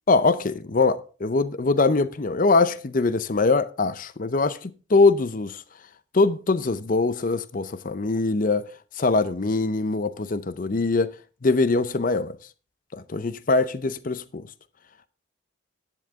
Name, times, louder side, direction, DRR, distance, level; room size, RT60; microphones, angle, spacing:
voice 1, 0.1-5.6 6.1-8.7 9.0-11.2 11.4-12.4 12.9-14.5, left 3 dB, 40° left, 0.6 m, -22 dB
10.5 x 9.7 x 3.6 m
head